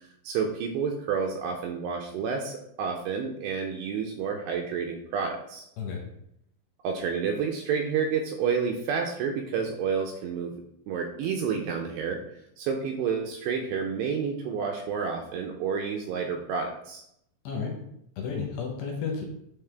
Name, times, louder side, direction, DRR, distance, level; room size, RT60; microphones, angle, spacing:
voice 1, 0.2-5.6 6.8-10.6 10.9-12.2 12.6-17.0, right 6 dB, 80° right, 2 dB, 2.5 m, -29 dB
voice 2, 18.2-19.2, left 5 dB, 75° left, 0 dB, 2.9 m, -32 dB
9.3 x 4.0 x 3.4 m, 0.75 s
omnidirectional pair, 5.5 m